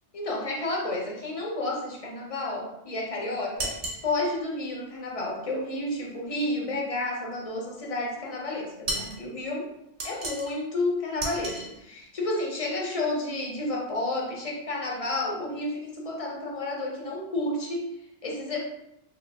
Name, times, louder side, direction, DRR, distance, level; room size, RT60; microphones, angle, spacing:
voice 1, 0.1-9.7 10.0-17.9 18.2-18.6, left 2 dB, 40° left, -1 dB, 0.6 m, -31 dB
sound 1, 3.6-4.0 8.9-9.2 10.0-10.6 11.2-11.7, right 1 dB, 50° right, 0.9 m, -32 dB
3.1 x 2.2 x 3.3 m, 0.83 s
omnidirectional pair, 1.2 m